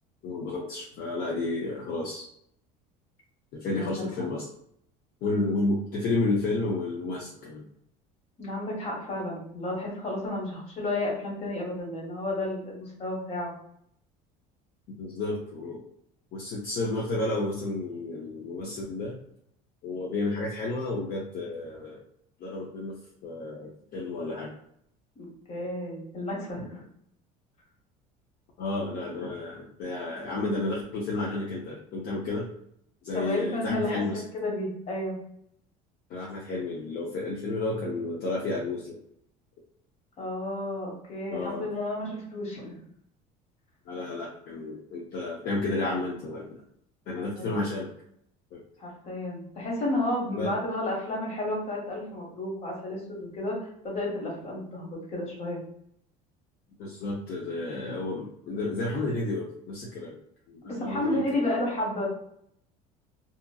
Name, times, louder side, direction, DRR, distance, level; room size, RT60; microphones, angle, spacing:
voice 1, 0.2-2.3 3.5-4.4 5.2-7.7 15.0-15.8 16.3-19.2 19.8-22.0 22.4-23.0 23.2-24.5 28.6-32.5 33.0-34.2 36.1-39.0 41.3-41.7 43.9-46.5 47.1-47.9 48.5-48.6 50.3-50.5 56.8-60.2 60.5-61.4, left 2 dB, 55° left, -3 dB, 0.7 m, -31 dB
voice 2, 3.7-4.0 8.4-13.5 25.2-26.8 33.1-34.0 34.4-35.2 40.2-42.8 47.3-47.7 48.8-55.6 60.6-62.1, left 1 dB, 40° left, -2 dB, 1.3 m, -32 dB
2.9 x 2.4 x 2.3 m, 0.70 s
cardioid pair, 135°, 18 cm